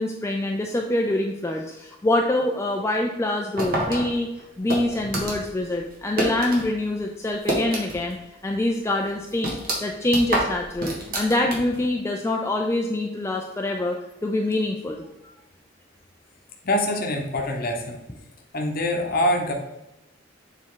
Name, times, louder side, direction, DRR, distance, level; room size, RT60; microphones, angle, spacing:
voice 1, 0.0-4.3 4.6-8.2 8.4-9.5 9.8-14.0 14.2-15.0, left 1 dB, 15° left, 1 dB, 0.4 m, -25 dB
sound 1, 3.6-6.7 7.0-8.2 8.5-8.6 9.0-11.9, right 1 dB, 50° right, 1.5 m, -28 dB
voice 2, 16.6-18.0 18.5-19.5, left 1 dB, 50° left, 1 dB, 0.9 m, -24 dB
7.4 x 3.6 x 3.8 m, 0.93 s
head